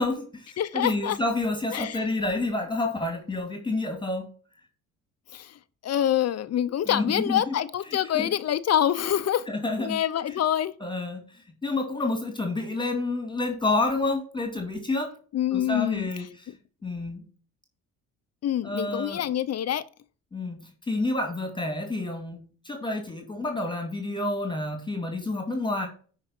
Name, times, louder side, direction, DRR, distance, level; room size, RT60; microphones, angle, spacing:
voice 1, 0.0-4.3 6.9-7.5 8.1-8.3 9.5-10.0 10.8-15.2 15.5-16.5 16.8-17.2 18.6-19.2 20.3-25.9, left 2 dB, 15° left, 2.3 m, -29 dB
voice 2, 0.6-1.2 1.7-2.1 5.3-9.5 9.8-10.7 15.3-16.1 18.4-19.8, left 11 dB, 50° left, 0.8 m, -26 dB
9.9 x 5.1 x 4.4 m
cardioid pair, 95°, 33 cm